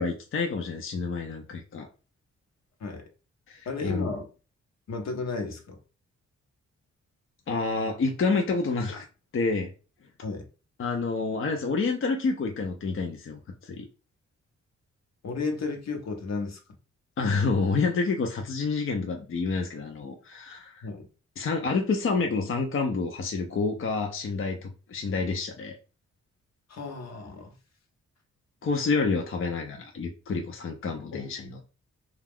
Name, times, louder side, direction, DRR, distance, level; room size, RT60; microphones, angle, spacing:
voice 1, 0.0-1.9 3.5-4.1 7.5-9.0 9.3-9.7 10.8-13.9 17.2-20.8 21.4-25.8 28.6-31.6, left 4 dB, 45° left, 0.6 m, -28 dB
voice 2, 3.6-4.3 4.9-5.8 10.2-10.5 15.2-16.6 20.8-21.1 26.7-27.6 31.1-31.2, left 4 dB, 65° left, 0.9 m, -33 dB
2.3 x 2.3 x 3.5 m
cardioid pair, 60°, 29 cm